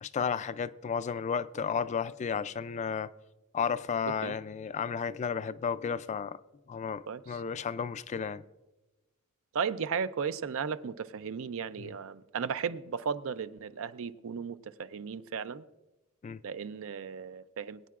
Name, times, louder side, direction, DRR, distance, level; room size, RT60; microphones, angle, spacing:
voice 1, 0.0-3.1 3.5-6.4 6.7-8.4 11.8-11.9 16.2-16.4, left 6 dB, 35° left, 0.3 m, -33 dB
voice 2, 7.1-7.4 9.5-15.6 16.4-17.9, right 6 dB, 65° right, 0.5 m, -35 dB
21.0 x 9.1 x 2.4 m
head